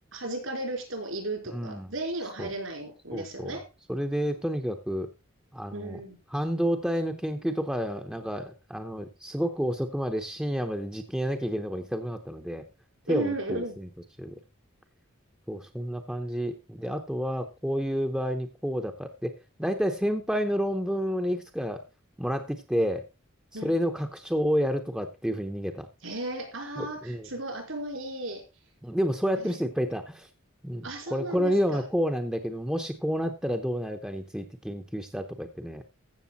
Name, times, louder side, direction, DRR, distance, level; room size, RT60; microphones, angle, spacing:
voice 1, 0.1-3.6 5.7-6.2 13.1-13.7 23.5-23.9 26.0-28.4 29.4-29.5 30.8-31.8, right 2 dB, 75° right, 3 dB, 4.7 m, -35 dB
voice 2, 1.5-1.9 2.4-2.5 3.1-3.6 3.9-5.1 5.5-6.0 6.3-12.6 13.1-13.9 14.2-14.4 15.5-19.3 19.6-21.8 22.2-23.0 23.6-25.9 26.8-27.3 28.8-30.3 30.6-35.8, equal, 5° right, 4 dB, 0.8 m, -30 dB
15.0 x 6.8 x 4.1 m, 0.28 s
head